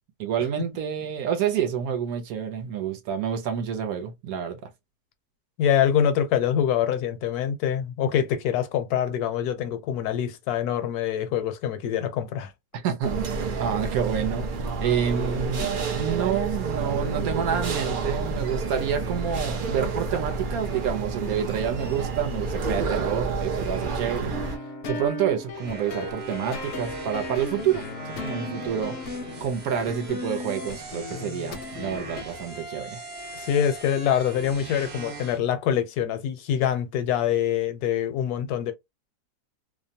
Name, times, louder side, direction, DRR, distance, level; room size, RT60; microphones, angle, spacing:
voice 1, 0.2-4.7 12.7-14.5 14.8-24.4 24.9-29.0 29.4-33.0, right 8 dB, 70° right, 1.0 m, -28 dB
voice 2, 5.6-12.5 33.3-38.7, left 9 dB, 75° left, 1.1 m, -25 dB
sound 1, 13.0-24.6, right 4 dB, 85° right, 0.4 m, -29 dB
sound 2, 24.3-32.2, left 3 dB, 60° left, 0.7 m, -36 dB
sound 3, 25.5-35.4, right 2 dB, 35° right, 0.8 m, -40 dB
2.8 x 2.1 x 2.5 m
omnidirectional pair, 1.7 m